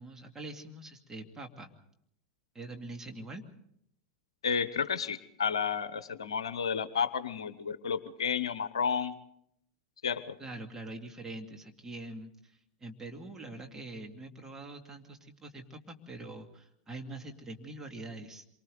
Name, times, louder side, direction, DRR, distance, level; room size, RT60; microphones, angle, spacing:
voice 1, 0.0-1.7 2.5-3.4 10.4-12.5 12.8-18.4, right 2 dB, 15° right, 3 dB, 2.4 m, -44 dB
voice 2, 4.4-9.1 10.0-10.4, left 6 dB, 70° left, 14 dB, 0.9 m, -31 dB
27.0 x 24.0 x 4.0 m, 0.72 s
figure-of-eight pair, 85°, 3 cm